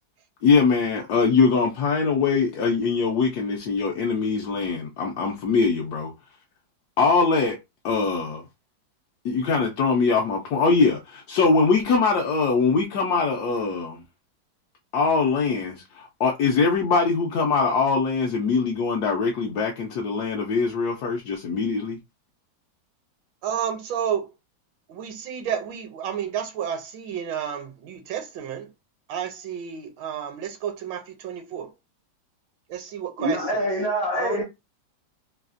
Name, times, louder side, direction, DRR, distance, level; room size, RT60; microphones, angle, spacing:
voice 1, 0.4-6.1 7.0-7.6 7.8-8.4 9.2-14.0 14.9-22.0, left 4 dB, 70° left, 0.9 m, -22 dB
voice 2, 23.4-24.3 24.9-28.7 29.1-31.7 32.7-33.6 34.1-34.4, right 8 dB, 80° right, 1.4 m, -31 dB
voice 3, 33.2-34.4, equal, 40° left, 0.5 m, -25 dB
3.3 x 2.3 x 2.5 m
omnidirectional pair, 2.1 m